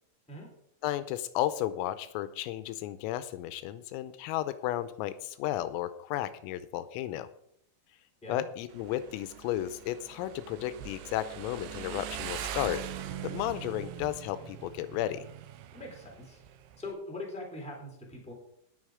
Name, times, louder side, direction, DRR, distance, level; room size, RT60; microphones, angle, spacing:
voice 1, 0.8-7.3 8.3-12.8 13.2-15.2, left 13 dB, 85° left, 13 dB, 3.3 m, -33 dB
Motorcycle, 8.7-16.9, right 10 dB, 80° right, 2.9 m, -42 dB
voice 2, 15.7-16.4 16.8-18.3, left 2 dB, ahead, -1 dB, 2.5 m, -42 dB
19.0 x 6.4 x 4.9 m, 0.73 s
omnidirectional pair, 6.0 m